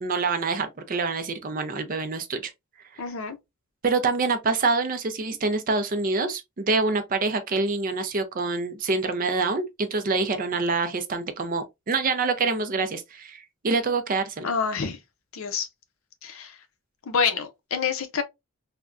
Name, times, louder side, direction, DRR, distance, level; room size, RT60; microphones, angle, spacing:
voice 1, 0.0-2.5 2.9-3.0 3.8-14.5, right 3 dB, 40° right, 0.4 m, -26 dB
voice 2, 3.0-3.4 14.4-15.0 15.3-15.7 16.2-16.6 17.1-18.2, left 6 dB, 70° left, 0.6 m, -27 dB
3.4 x 2.1 x 2.4 m
head